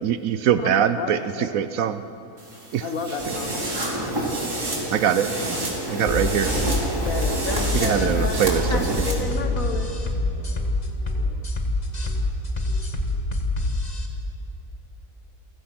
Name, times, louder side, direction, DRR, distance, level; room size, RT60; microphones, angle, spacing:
voice 1, 0.0-2.0 2.7-2.8 4.9-5.3 5.9-6.8 7.7-9.1, right 9 dB, 80° right, 12 dB, 1.1 m, -23 dB
voice 2, 0.6-1.5 2.8-3.7 7.0-9.9, left 3 dB, 75° left, 5 dB, 1.8 m, -31 dB
sound 1, 2.4-9.1, right 2 dB, 60° right, 3.5 m, -32 dB
sound 2, 3.2-9.1, right 1 dB, 15° right, 3.3 m, -30 dB
sound 3, 6.1-14.1, left 2 dB, 30° left, 1.8 m, -26 dB
voice 3, 9.4-11.4 12.0-12.3 12.6-13.2, left 1 dB, 5° left, -4 dB, 6.4 m, -44 dB
29.0 x 15.5 x 5.9 m, 2.9 s
omnidirectional pair, 1.4 m